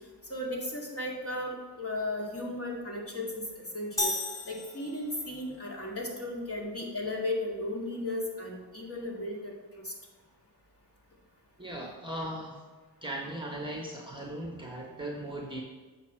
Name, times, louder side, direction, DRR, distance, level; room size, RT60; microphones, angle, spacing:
voice 1, 0.3-3.4 3.7-4.1 4.5-9.5 9.8-9.9, left 1 dB, 30° left, -3 dB, 2.4 m, -35 dB
sound 1, 4.0-5.4, left 1 dB, 5° left, 1.7 m, -33 dB
voice 2, 11.6-12.6 13.0-15.6, right 1 dB, 10° right, -1 dB, 1.3 m, -38 dB
8.1 x 5.7 x 4.5 m, 1.4 s
cardioid pair, 75°, 45 cm